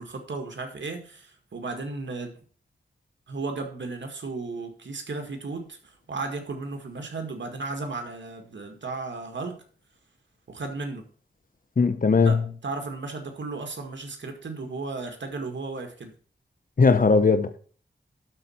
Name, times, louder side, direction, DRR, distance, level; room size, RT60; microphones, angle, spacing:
voice 1, 0.0-2.4 3.3-9.6 10.5-11.1 12.3-16.1, right 3 dB, 75° right, 1.9 m, -35 dB
voice 2, 11.8-12.4 16.8-17.6, left 4 dB, 45° left, 0.9 m, -19 dB
12.0 x 4.2 x 5.8 m
wide cardioid pair, 60°, 19 cm